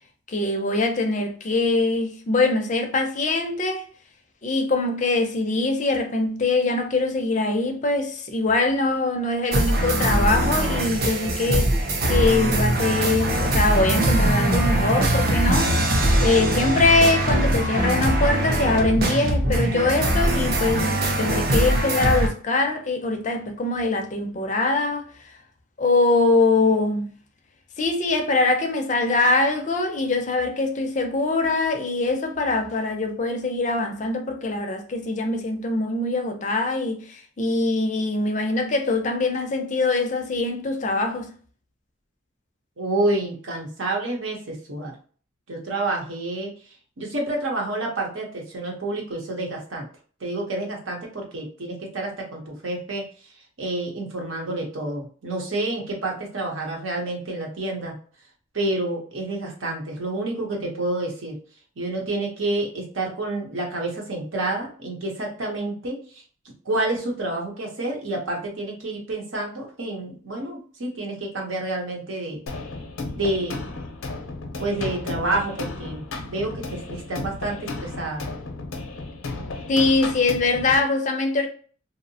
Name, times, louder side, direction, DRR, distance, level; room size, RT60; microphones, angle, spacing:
voice 1, 0.3-3.9 4.4-11.8 12.1-15.8 16.2-25.1 25.8-27.1 27.8-41.3 79.7-81.5, left 2 dB, 35° left, 0.4 m, -23 dB
sound 1, 9.5-22.3, right 1 dB, 45° right, 0.5 m, -22 dB
voice 2, 42.8-44.9 45.5-46.5 47.0-49.8 50.2-53.0 53.6-57.9 58.5-61.3 61.8-66.0 66.6-72.4 73.1-73.6 74.6-78.3, right 2 dB, 75° right, 0.9 m, -28 dB
sound 2, 72.5-80.8, left 3 dB, 85° left, 0.5 m, -34 dB
2.7 x 2.0 x 2.6 m
head